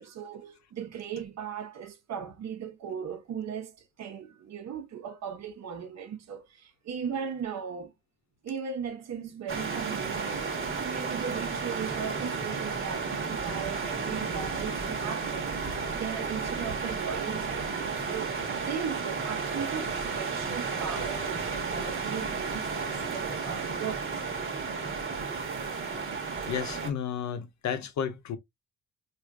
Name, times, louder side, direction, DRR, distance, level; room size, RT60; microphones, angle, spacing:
voice 1, 0.0-7.9 8.4-10.5 10.8-24.4, right 7 dB, 60° right, 1.0 m, -38 dB
sound 1, 9.5-26.9, right 5 dB, 45° right, 1.3 m, -33 dB
voice 2, 26.5-28.4, left 8 dB, 70° left, 0.7 m, -32 dB
4.8 x 2.6 x 2.3 m
wide cardioid pair, 170°, 30 cm